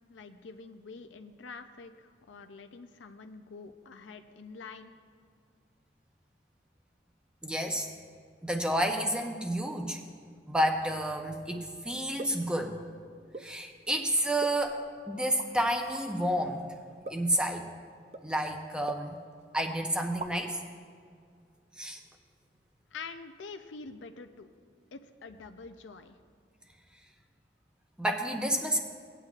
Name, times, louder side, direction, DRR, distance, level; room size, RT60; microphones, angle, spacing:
voice 1, 0.1-4.9 22.9-24.5 24.9-26.2, left 4 dB, 85° left, 8 dB, 0.5 m, -46 dB
voice 2, 7.4-7.9 8.4-10.0 10.5-12.8 13.4-16.7 17.1-17.7 18.2-19.1 19.5-20.6 21.8-22.0 28.0-28.8, right 1 dB, 5° right, 3 dB, 0.7 m, -30 dB
sound 1, 12.2-12.5 13.3-13.6 14.4-14.9 15.3-15.5 15.9-16.1 17.1-17.4 18.1-18.3 18.9-19.4 19.7-19.8 20.1-20.6, right 3 dB, 35° right, 0.4 m, -42 dB
18.0 x 9.1 x 2.4 m, 2.1 s
head